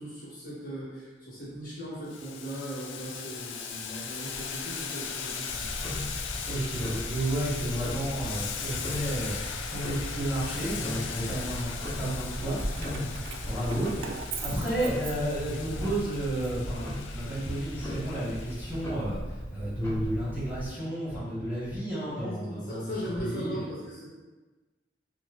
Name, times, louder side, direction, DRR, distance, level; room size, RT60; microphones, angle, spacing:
voice 1, 0.0-5.7 13.8-13.9 22.1-24.1, equal, 50° left, -8 dB, 1.1 m, -38 dB
Boiling, 2.1-18.9, left 6 dB, 90° left, 0.3 m, -39 dB
Tick-tock, 5.5-20.7, equal, 15° left, 0.7 m, -37 dB
voice 2, 6.1-14.1 14.4-19.2 19.5-22.9 23.2-23.7, right 1 dB, 10° right, -11 dB, 1.0 m, -32 dB
Keys jangling, 12.5-15.7 16.1-17.4, right 7 dB, 85° right, 0.3 m, -42 dB
2.9 x 2.0 x 3.4 m, 1.2 s
head